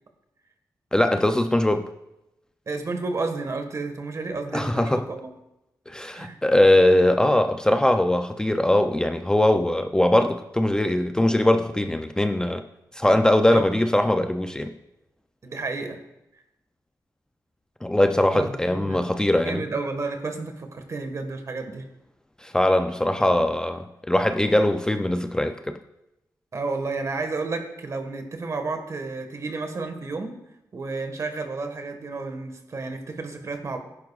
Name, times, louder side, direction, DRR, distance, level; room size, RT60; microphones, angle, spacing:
voice 1, 0.9-1.9 4.5-5.0 5.9-12.6 12.9-14.7 17.8-19.6 22.4-25.8, left 1 dB, 10° left, 7 dB, 0.5 m, -21 dB
voice 2, 2.7-5.3 6.1-6.6 13.5-13.7 15.4-16.0 18.3-19.1 19.4-21.9 26.5-30.4 30.7-33.8, right 3 dB, 45° right, 6 dB, 1.6 m, -31 dB
16.0 x 10.5 x 2.4 m, 0.89 s
wide cardioid pair, 110°, 7 cm